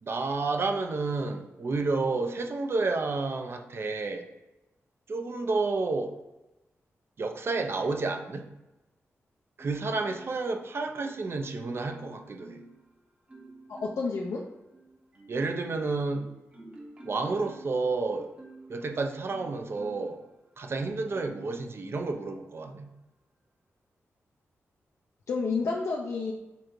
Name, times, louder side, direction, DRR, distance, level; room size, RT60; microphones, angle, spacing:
voice 1, 0.0-4.3 5.1-6.2 7.2-8.5 9.6-12.6 15.3-16.3 17.0-18.3 18.7-20.2 20.6-22.9, right 3 dB, 50° right, 5 dB, 0.5 m, -30 dB
Marimba xylophone, 9.6-10.6 11.0-12.8 13.3-14.2 14.7-20.2 20.7-21.5 22.1-22.3, right 2 dB, 25° right, 0.9 m, -49 dB
voice 2, 13.7-14.4 25.3-26.3, left 4 dB, 80° left, -1 dB, 0.5 m, -30 dB
6.7 x 2.5 x 3.1 m, 0.99 s
wide cardioid pair, 95°, 5 cm